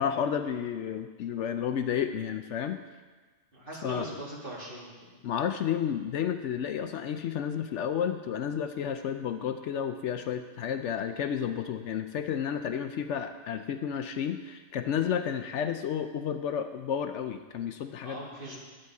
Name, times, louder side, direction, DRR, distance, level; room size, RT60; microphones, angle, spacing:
voice 1, 0.0-2.8 3.8-4.1 5.2-18.2, left 8 dB, 70° left, 8 dB, 0.8 m, -31 dB
voice 2, 3.5-5.2 18.0-18.6, equal, 45° right, -5 dB, 2.4 m, -40 dB
10.5 x 8.7 x 4.7 m, 1.4 s
omnidirectional pair, 1.3 m